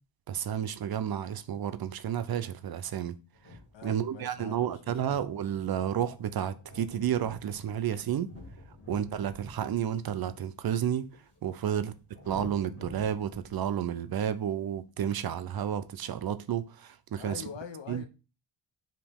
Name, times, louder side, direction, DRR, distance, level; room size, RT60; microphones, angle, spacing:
voice 1, 0.3-3.1 3.8-8.3 8.9-11.1 11.4-11.9 12.3-17.4 17.9-18.0, right 9 dB, 50° right, 0.5 m, -31 dB
sound 1, 3.3-13.7, left 1 dB, 30° left, 1.9 m, -50 dB
voice 2, 3.7-5.2 8.8-9.0 11.7-11.9 17.2-18.1, left 6 dB, 65° left, 0.9 m, -45 dB
5.0 x 2.9 x 3.4 m
wide cardioid pair, 125°, 48 cm